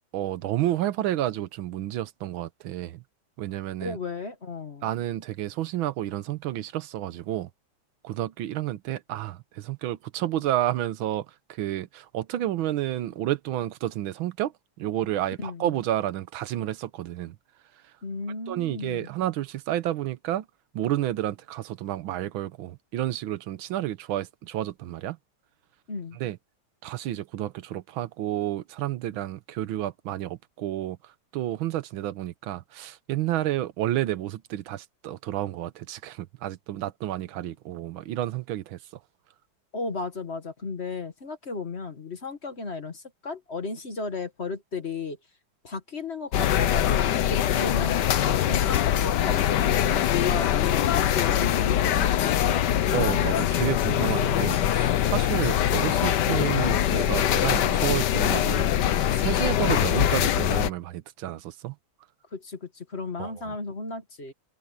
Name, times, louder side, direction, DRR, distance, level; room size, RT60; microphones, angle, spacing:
voice 1, 0.1-3.0 3.4-4.0 4.8-7.5 8.0-11.2 11.6-14.5 14.8-17.3 18.5-20.4 20.7-25.2 26.2-26.4 26.8-31.0 31.3-38.8 52.9-58.7 59.2-61.7 63.2-63.3, right 13 dB, 85° right, 1.6 m, -30 dB
voice 2, 3.8-4.9 15.4-15.7 18.0-19.1 25.9-26.2 39.7-45.2 45.6-48.0 48.3-52.7 62.3-64.3, left 3 dB, 35° left, 1.5 m, -35 dB
sound 1, 46.3-60.7, left 11 dB, 65° left, 1.4 m, -23 dB
open air
omnidirectional pair, 2.2 m